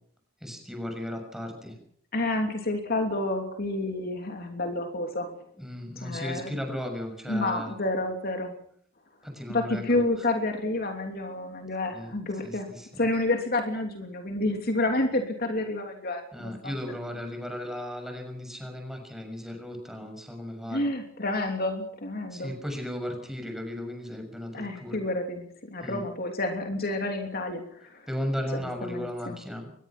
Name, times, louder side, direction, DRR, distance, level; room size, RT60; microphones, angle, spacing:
voice 1, 0.4-1.8 5.6-7.7 9.2-10.0 11.9-12.1 12.4-13.0 16.3-20.9 22.3-25.0 25.8-26.0 28.1-29.7, left 1 dB, ahead, 4 dB, 6.5 m, -35 dB
voice 2, 2.1-5.4 6.0-6.5 7.3-8.5 9.5-12.7 13.0-16.7 20.7-22.5 24.5-28.1 28.5-29.4, left 2 dB, 50° left, 4 dB, 3.1 m, -29 dB
23.5 x 21.0 x 6.0 m, 0.64 s
head